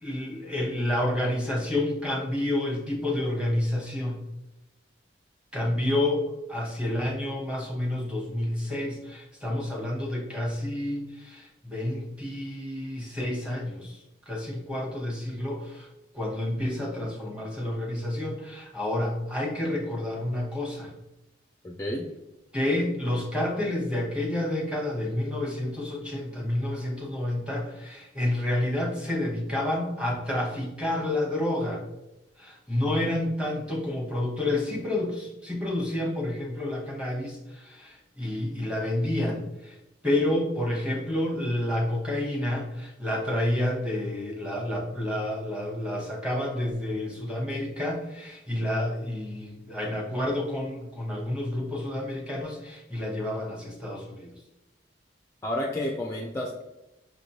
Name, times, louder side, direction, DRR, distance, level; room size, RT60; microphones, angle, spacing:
voice 1, 0.0-4.2 5.5-15.9 16.1-20.9 22.5-31.8 32.4-39.8 40.0-54.3, left 1 dB, 5° right, -2 dB, 0.9 m, -29 dB
voice 2, 21.6-22.1 55.4-56.6, left 1 dB, 15° left, 0 dB, 0.3 m, -30 dB
5.8 x 3.0 x 2.7 m, 0.94 s
head